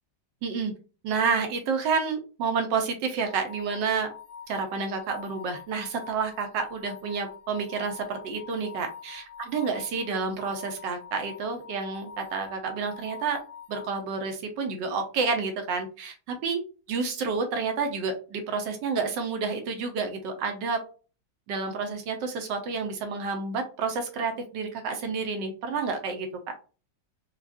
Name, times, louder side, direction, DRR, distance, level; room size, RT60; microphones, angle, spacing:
voice 1, 0.4-0.7 1.0-4.1 4.5-13.4 13.7-16.6 16.9-20.8 21.5-26.3, right 5 dB, 80° right, 6 dB, 1.4 m, -29 dB
sound 1, 3.2-14.0, left 7 dB, 55° left, 1.2 m, -46 dB
4.6 x 2.4 x 2.5 m, 0.36 s
omnidirectional pair, 1.9 m